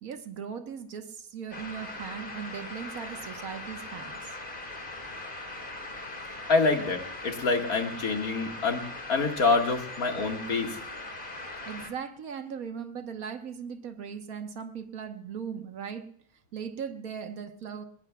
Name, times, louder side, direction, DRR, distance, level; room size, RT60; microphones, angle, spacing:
voice 1, 0.0-4.4 11.6-16.1 16.5-17.8, right 7 dB, 80° right, 1.6 m, -38 dB
sound 1, 1.5-11.9, left 2 dB, 35° left, 2.2 m, -40 dB
voice 2, 6.5-8.8 9.1-10.8, left 3 dB, 80° left, 2.3 m, -26 dB
22.0 x 20.5 x 2.3 m
omnidirectional pair, 1.5 m